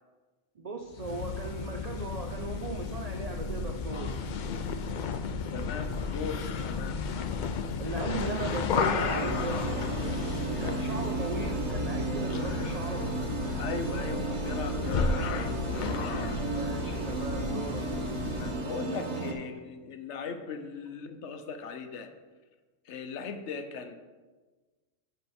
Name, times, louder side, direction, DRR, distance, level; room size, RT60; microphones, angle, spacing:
voice 1, 0.6-4.2 7.8-9.7 10.6-13.1 16.5-17.9, right 3 dB, 75° right, 4 dB, 0.3 m, -38 dB
sound 1, 0.9-18.7, left 5 dB, 80° left, 0.4 m, -33 dB
voice 2, 5.5-7.0 13.6-16.3 18.3-22.1 22.9-23.9, left 5 dB, 65° left, 7 dB, 0.9 m, -39 dB
sound 2, 9.0-19.3, right 4 dB, 60° right, 1.1 m, -34 dB
12.0 x 4.0 x 4.2 m, 1.3 s
omnidirectional pair, 1.4 m